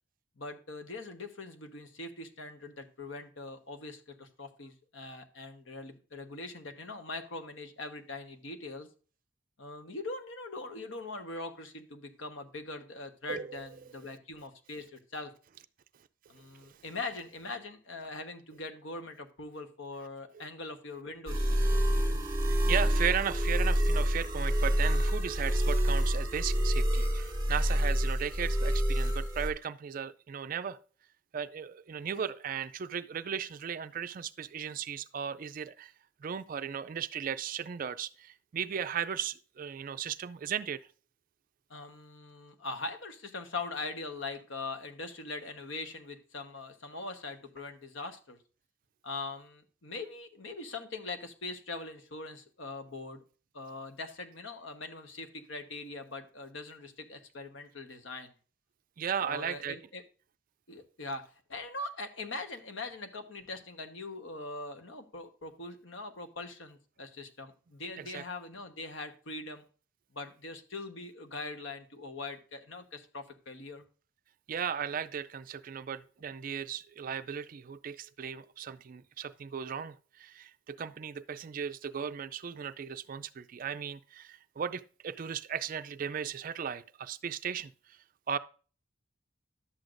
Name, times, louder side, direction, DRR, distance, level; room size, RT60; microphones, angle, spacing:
voice 1, 0.4-8.9 9.6-15.3 16.3-21.6 41.7-48.4 49.0-53.2 53.5-58.3 59.2-60.0 60.7-69.6 70.1-73.8, left 3 dB, 75° left, 1.1 m, -42 dB
voice 2, 13.3-13.6 21.9-22.1 22.4-30.8 31.3-35.9 36.2-40.8 59.0-59.8 68.0-68.2 74.5-88.0 88.3-88.4, right 8 dB, 45° right, 0.3 m, -36 dB
sound 1, 21.3-29.5, equal, 20° right, 1.4 m, -27 dB
11.5 x 7.8 x 2.6 m
head